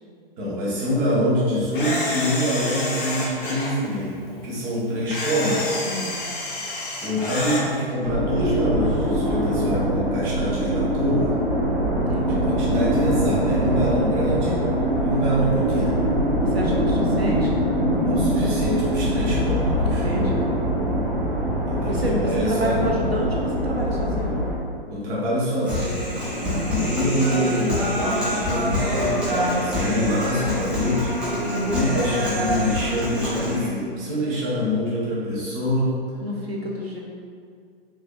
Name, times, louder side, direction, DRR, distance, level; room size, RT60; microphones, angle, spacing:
voice 1, 0.4-5.8 7.0-11.3 12.3-14.6 15.0-16.1 18.0-20.0 21.7-22.8 24.9-26.0 26.4-31.1 31.7-36.0, equal, 25° right, -6 dB, 0.9 m, -25 dB
Camera, 1.7-3.7 5.1-7.6, left 2 dB, 55° left, 0.9 m, -28 dB
voice 2, 5.8-6.2 12.1-12.6 16.5-17.6 20.0-20.5 21.9-24.4 25.7-25.9 26.4-27.0 31.5-32.0 36.2-37.0, right 1 dB, 90° right, -2 dB, 0.6 m, -29 dB
sound 1, 8.0-24.6, equal, 45° right, 1.3 m, -23 dB
Human voice, 25.7-33.7, equal, 5° right, 0.7 m, -25 dB
4.6 x 2.7 x 2.3 m, 2.2 s
figure-of-eight pair, 115°, 30 cm